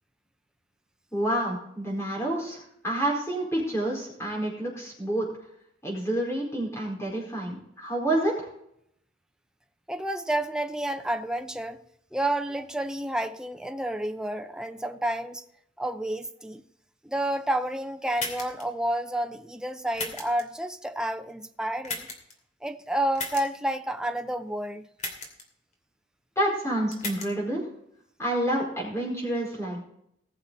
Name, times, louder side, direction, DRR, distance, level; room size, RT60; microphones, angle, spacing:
voice 1, 1.1-5.3 5.8-8.5 26.4-27.7 28.2-29.8, right 1 dB, 15° left, 4.6 m, -28 dB
voice 2, 9.9-11.8 12.1-15.4 15.8-16.6 17.0-22.1 22.6-24.8, right 1 dB, 5° right, 0.6 m, -30 dB
sound 1, 18.2-18.6 19.9-20.4 21.8-22.3 23.2-23.4 25.0-25.4 26.9-27.3, left 3 dB, 35° left, 2.7 m, -34 dB
19.5 x 6.9 x 4.1 m
head